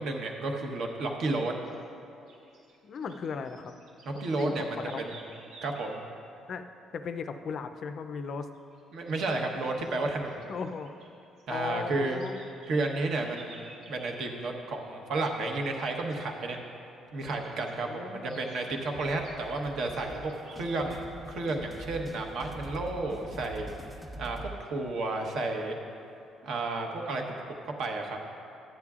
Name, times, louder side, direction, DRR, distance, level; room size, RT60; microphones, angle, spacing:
voice 1, 0.0-1.5 4.2-5.2 5.6-6.0 8.9-10.5 11.5-12.2 12.7-16.6 17.1-23.7 24.2-25.8 26.4-27.2 27.6-28.2, right 2 dB, 55° right, 2 dB, 1.0 m, -32 dB
sound 1, 1.6-1.8 2.3-6.0 8.5-8.8 9.1-9.2 9.7-11.1 11.4-14.3 17.3-17.8 18.2-20.8, right 3 dB, 90° right, 2.3 m, -54 dB
voice 2, 2.8-3.7 4.1-4.9 6.5-6.7 6.9-8.5 10.5-10.9 11.5-12.5 17.8-18.6, left 5 dB, 40° left, 8 dB, 0.4 m, -37 dB
sound 2, 18.9-24.6, right 1 dB, 5° right, 1.0 m, -44 dB
14.0 x 9.6 x 2.4 m, 2.6 s
cardioid pair, 165°, 0 cm